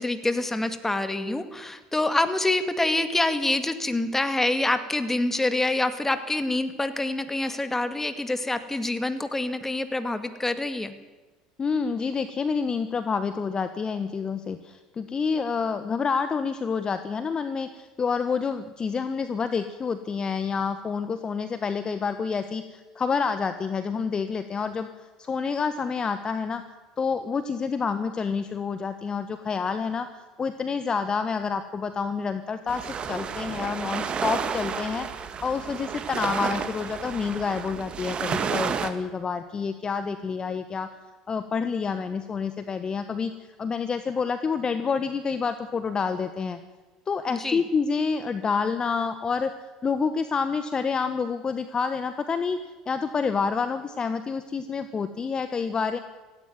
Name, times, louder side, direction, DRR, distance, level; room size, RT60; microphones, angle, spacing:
voice 1, 0.0-10.9 47.3-47.6, left 2 dB, 10° left, 10 dB, 2.1 m, -26 dB
voice 2, 11.6-24.9 25.2-26.6 27.0-30.1 30.4-40.9 41.3-46.6 47.1-49.5 49.8-52.6 52.9-56.0, left 5 dB, 30° left, 10 dB, 1.3 m, -28 dB
sound 1, 32.7-38.9, right 6 dB, 35° right, 1.9 m, -31 dB
17.0 x 16.0 x 9.6 m, 1.2 s
hypercardioid pair, 70°, 3 cm